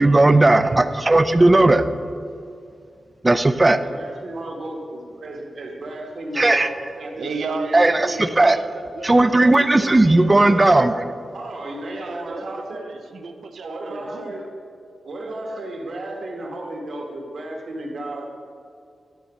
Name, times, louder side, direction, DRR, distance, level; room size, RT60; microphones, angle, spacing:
voice 1, 0.0-1.9 3.2-3.8 6.4-6.7 7.7-8.6 9.0-10.9, right 2 dB, 25° right, 11 dB, 0.4 m, -16 dB
voice 2, 3.8-8.0 10.3-10.9 11.3-12.9 13.6-14.5 15.0-18.3, right 1 dB, 65° right, 1 dB, 1.4 m, -33 dB
voice 3, 7.2-10.3 12.0-14.3, right 4 dB, 85° right, 6 dB, 0.6 m, -34 dB
10.5 x 4.1 x 6.1 m, 2.3 s
wide cardioid pair, 110°, 0 cm